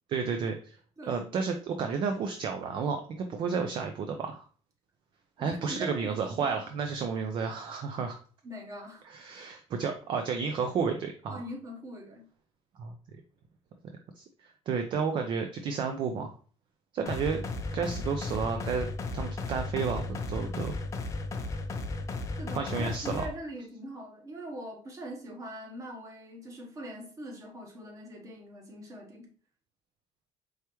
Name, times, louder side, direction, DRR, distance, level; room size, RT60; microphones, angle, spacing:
voice 1, 0.1-0.8 1.0-4.4 5.4-8.2 9.0-11.4 12.8-13.0 14.2-16.3 16.9-17.4 17.7-18.9 19.1-20.8 22.6-23.2, right 5 dB, 40° right, 0.4 m, -31 dB
voice 2, 1.0-1.3 5.4-6.6 8.4-9.1 11.3-12.3 22.4-29.3, equal, 25° right, 1.0 m, -42 dB
sound 1, 17.1-23.3, left 3 dB, 25° left, 0.5 m, -35 dB
4.6 x 3.4 x 3.0 m
cardioid pair, 180°, 12 cm